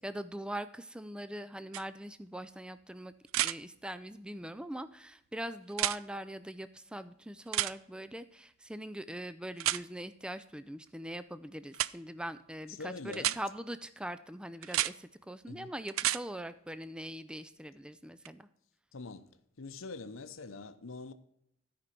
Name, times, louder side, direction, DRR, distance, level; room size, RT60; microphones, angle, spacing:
voice 1, 0.0-18.5, right 1 dB, 5° right, 0.3 m, -42 dB
sound 1, 1.7-1.8 3.3-3.6 5.7-6.0 7.5-7.7 9.6-9.8 11.7-11.9 13.1-13.4 14.6-14.9 15.9-16.2 18.3-18.4, right 14 dB, 85° right, 0.4 m, -30 dB
voice 2, 12.8-13.4 15.5-15.7 18.9-19.3 19.6-21.1, left 3 dB, 80° left, 0.8 m, -44 dB
13.0 x 5.2 x 5.9 m
head